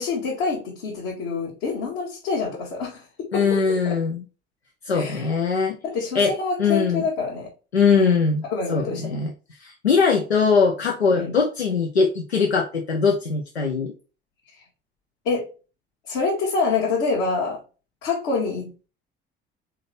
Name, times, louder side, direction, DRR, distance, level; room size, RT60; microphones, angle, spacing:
voice 1, 0.0-3.0 3.3-4.0 4.9-5.3 5.8-7.5 7.9-9.2 11.1-11.3 15.2-15.5 16.1-17.6 18.0-18.9, left 4 dB, 65° left, 1.5 m, -26 dB
voice 2, 3.3-4.2 4.9-5.8 6.1-6.3 6.6-7.0 7.7-8.4 8.7-9.3 9.6-13.9, left 5 dB, 90° left, 0.6 m, -21 dB
4.1 x 3.8 x 3.3 m
figure-of-eight pair, 55°, 31 cm